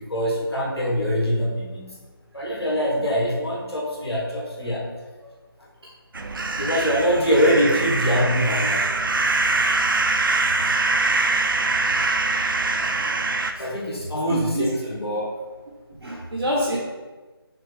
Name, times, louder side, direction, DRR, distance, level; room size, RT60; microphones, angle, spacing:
voice 1, 0.1-1.9 2.3-4.9 6.6-8.8 13.6-15.3, equal, 85° left, -3 dB, 1.3 m, -23 dB
sound 1, 6.1-13.5, right 3 dB, 60° right, 0.4 m, -23 dB
voice 2, 12.7-13.1 13.6-13.7 14.3-14.7 16.0-16.8, equal, 80° right, -4 dB, 0.8 m, -27 dB
5.9 x 2.0 x 3.2 m, 1.3 s
figure-of-eight pair, 165°, 13 cm